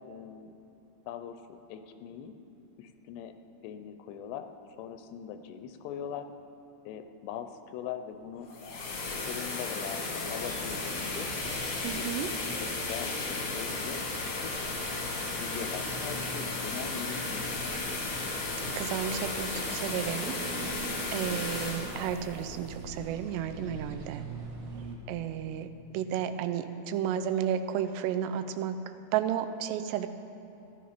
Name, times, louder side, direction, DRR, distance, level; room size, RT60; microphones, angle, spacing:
voice 1, 0.1-0.5 1.1-2.4 2.8-3.3 3.6-4.5 4.8-6.3 6.9-8.5 9.1-11.3 12.0-14.5 15.3-17.8, left 9 dB, 85° left, 8 dB, 2.9 m, -41 dB
sound 1, 8.3-23.3, left 3 dB, 50° left, 2.0 m, -34 dB
sound 2, 10.1-25.0, right 3 dB, 70° right, 2.9 m, -45 dB
voice 2, 11.8-12.3 18.8-20.4 21.1-24.3 25.1-25.7 25.9-28.8 29.1-30.1, right 9 dB, 85° right, 10 dB, 2.7 m, -32 dB
15.5 x 11.5 x 5.1 m, 2.8 s
omnidirectional pair, 4.8 m